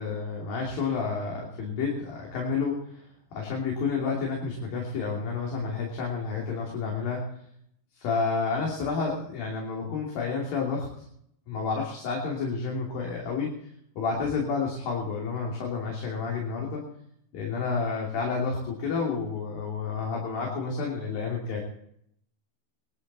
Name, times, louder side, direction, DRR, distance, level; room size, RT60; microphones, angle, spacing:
voice 1, 0.0-3.0 3.3-7.3 7.9-10.9 11.5-13.5 14.0-16.8 17.3-21.6, left 4 dB, 85° left, -2 dB, 4.7 m, -30 dB
20.5 x 12.5 x 4.3 m, 0.70 s
omnidirectional pair, 4.0 m